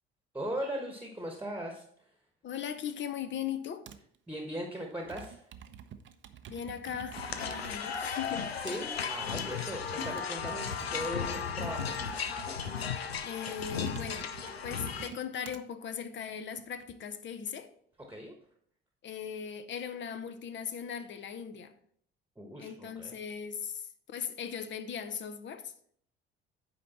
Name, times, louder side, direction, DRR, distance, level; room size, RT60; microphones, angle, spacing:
voice 1, 0.3-2.1 4.3-5.5 8.6-12.0 18.0-18.4 22.4-23.2, equal, 5° right, 1.3 m, -39 dB
voice 2, 2.4-3.9 6.5-8.5 13.2-14.3 14.6-17.7 19.0-21.7 22.6-25.7, left 8 dB, 40° left, 0.8 m, -39 dB
Computer keyboard, 3.9-4.2 4.9-8.1 8.7-15.6 16.3-16.8, right 9 dB, 40° right, 0.7 m, -49 dB
sound 1, 7.1-15.1, left 7 dB, 85° left, 0.5 m, -35 dB
8.7 x 5.2 x 4.3 m
figure-of-eight pair, 50°, 30 cm